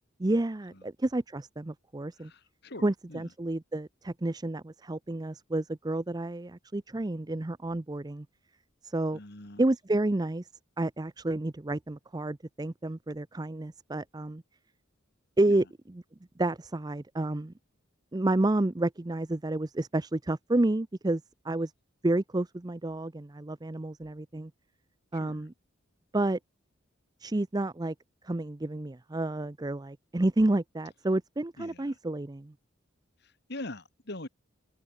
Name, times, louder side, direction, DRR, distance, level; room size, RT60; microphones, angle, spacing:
voice 1, 0.2-2.3 2.8-8.3 8.8-9.2 9.6-10.5 10.8-14.4 15.4-16.0 16.4-17.5 18.1-21.7 22.0-24.5 25.1-25.5 26.1-26.4 27.2-27.9 28.2-32.5, right 2 dB, 20° right, 0.5 m, -30 dB
voice 2, 2.2-3.3 9.1-9.6 15.5-15.6 25.1-25.5 31.6-31.9 33.5-34.3, left 1 dB, 55° left, 2.8 m, -43 dB
head